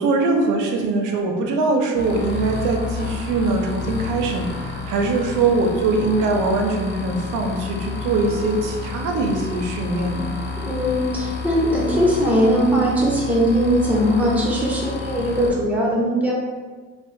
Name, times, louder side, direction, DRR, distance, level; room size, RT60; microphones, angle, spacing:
voice 1, 0.0-10.3, right 3 dB, 80° right, 2 dB, 0.5 m, -22 dB
sound 1, 1.9-15.5, left 4 dB, 35° left, 0.5 m, -30 dB
voice 2, 10.7-16.3, equal, 5° right, -4 dB, 0.6 m, -20 dB
2.6 x 2.1 x 2.5 m, 1.4 s
cardioid pair, 90°, 30 cm